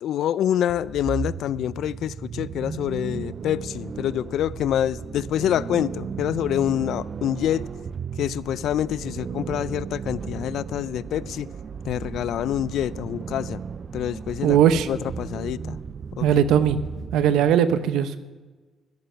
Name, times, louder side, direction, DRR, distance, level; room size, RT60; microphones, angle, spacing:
voice 1, 0.0-7.7 8.2-11.5 11.8-13.6 13.9-14.6 14.9-15.8 16.1-16.3, left 11 dB, 75° left, 0.4 m, -26 dB
sound 1, 0.7-17.6, right 6 dB, 45° right, 0.4 m, -35 dB
voice 2, 14.4-14.9 16.2-16.8 17.1-18.2, right 9 dB, 85° right, 0.7 m, -19 dB
13.5 x 10.5 x 5.7 m
cardioid pair, 90°, 0 cm